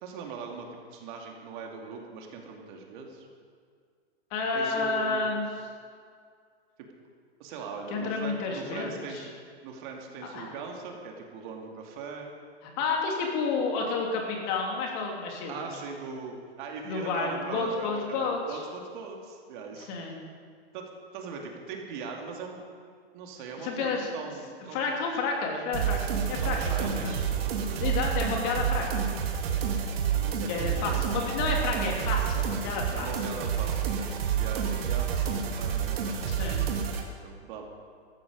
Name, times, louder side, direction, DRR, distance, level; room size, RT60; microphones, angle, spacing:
voice 1, 0.0-3.3 4.5-5.3 7.4-9.3 9.6-12.3 15.5-19.9 20.7-22.6 23.1-25.0 26.0-27.9 30.2-31.2 32.9-34.1 34.4-36.2 37.2-37.7, right 5 dB, 50° right, 1 dB, 2.6 m, -40 dB
voice 2, 4.3-5.4 7.9-9.3 10.3-10.5 12.6-15.6 16.8-18.6 19.9-20.2 23.6-24.1 24.7-26.0 26.3-27.2 27.8-29.0 30.5-33.1 36.3-36.7, left 4 dB, 40° left, 0 dB, 3.2 m, -30 dB
sound 1, 25.7-37.0, right 8 dB, 65° right, 2.4 m, -29 dB
15.0 x 13.5 x 5.3 m, 2.1 s
hypercardioid pair, 130°, 33 cm